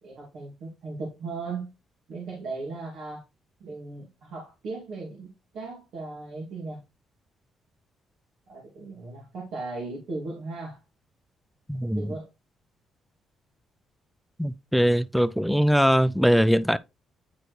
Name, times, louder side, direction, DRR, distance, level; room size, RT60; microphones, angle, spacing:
voice 1, 0.0-1.7 2.1-3.2 3.6-6.8 8.5-10.8 11.9-12.3, right 3 dB, 75° right, 2.4 m, -37 dB
voice 2, 11.7-12.1 14.4-16.8, equal, ahead, 0.4 m, -21 dB
9.4 x 4.3 x 3.2 m
cardioid pair, 90°, 0 cm